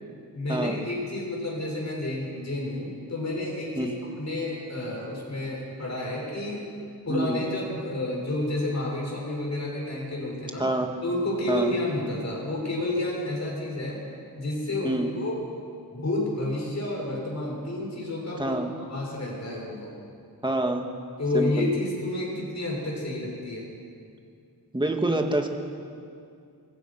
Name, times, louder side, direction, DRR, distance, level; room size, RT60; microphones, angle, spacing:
voice 1, 0.3-6.7 7.1-10.7 11.0-14.0 14.4-15.4 15.9-18.6 18.9-19.9 21.2-23.7, left 1 dB, 45° left, -2 dB, 7.4 m, -30 dB
voice 2, 7.1-7.4 10.6-10.9 11.5-11.7 14.8-15.1 18.4-18.7 20.4-20.9 21.3-21.7 24.7-25.5, right 1 dB, 10° right, 3 dB, 2.0 m, -26 dB
29.0 x 24.0 x 6.0 m, 2.4 s
wide cardioid pair, 155°, 39 cm